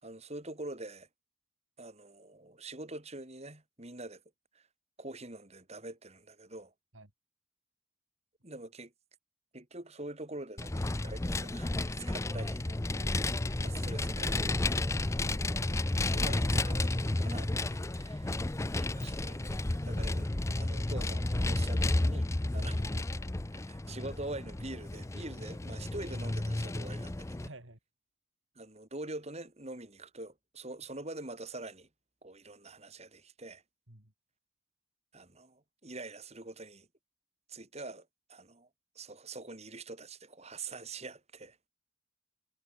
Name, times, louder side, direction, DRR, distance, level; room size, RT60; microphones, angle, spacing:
voice 1, 0.0-1.1 1.8-4.2 4.5-4.7 5.0-6.7 8.4-8.9 9.5-12.6 13.6-14.9 16.0-18.4 18.8-20.3 20.6-22.8 23.5-27.5 28.5-31.9 32.2-33.6 35.1-36.9 37.5-38.7 38.9-41.6, right 2 dB, 35° right, 3.3 m, -45 dB
Vehicle, 10.6-27.5, left 2 dB, 15° left, 0.5 m, -32 dB
voice 2, 15.2-15.8 22.5-22.7 27.4-27.8 33.9-34.1, right 2 dB, 80° right, 4.6 m, -53 dB
head